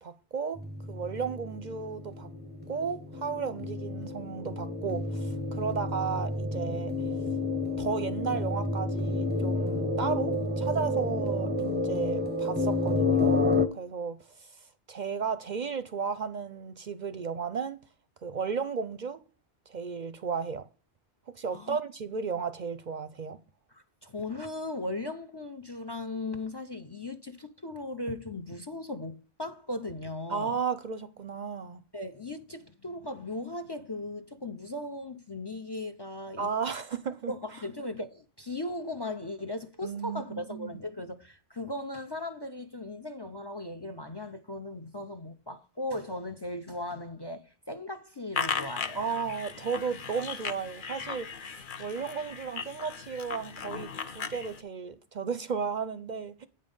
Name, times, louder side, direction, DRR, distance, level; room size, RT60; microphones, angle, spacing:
voice 1, 0.0-0.6 0.9-2.3 2.7-6.9 7.8-17.8 18.2-19.2 19.7-20.7 21.3-23.4 30.3-31.8 36.4-37.3 39.8-40.7 48.9-56.5, right 5 dB, 50° right, 0.6 m, -34 dB
sound 1, 0.6-13.7, left 2 dB, 10° right, 0.6 m, -30 dB
voice 2, 23.7-30.6 31.9-36.5 37.3-49.0, left 2 dB, 30° left, 0.6 m, -37 dB
sound 2, 48.3-54.6, left 6 dB, 55° left, 0.9 m, -37 dB
8.8 x 5.4 x 5.3 m
omnidirectional pair, 1.1 m